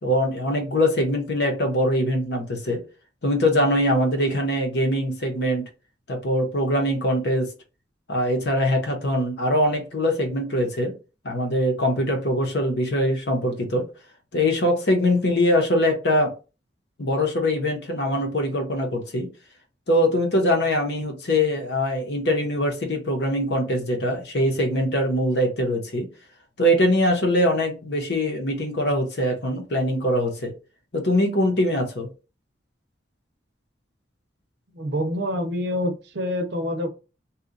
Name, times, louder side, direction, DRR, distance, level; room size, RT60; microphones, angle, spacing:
voice 1, 0.0-2.8 3.2-5.7 6.1-7.5 8.1-10.9 11.2-13.9 14.3-16.3 17.0-19.3 19.9-26.1 26.6-30.5 30.9-32.1, equal, 65° left, 0.9 m, -22 dB
voice 2, 34.7-36.9, left 1 dB, 65° right, 0.6 m, -26 dB
2.8 x 2.4 x 3.7 m
head